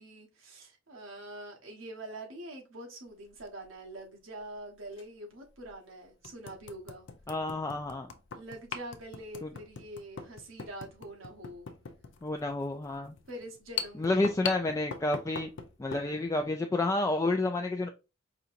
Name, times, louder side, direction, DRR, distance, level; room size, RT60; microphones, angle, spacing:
voice 1, 0.0-7.1 8.3-11.7 13.3-14.3, right 1 dB, 90° right, 1.2 m, -45 dB
sound 1, 3.2-3.5 4.9-5.0 5.6-5.7 6.2-16.1, left 6 dB, 65° left, 0.5 m, -41 dB
voice 2, 7.3-8.1 9.4-9.5 12.2-13.1 14.0-15.5 15.8-17.9, left 2 dB, 15° left, 0.3 m, -30 dB
4.9 x 2.8 x 2.5 m
head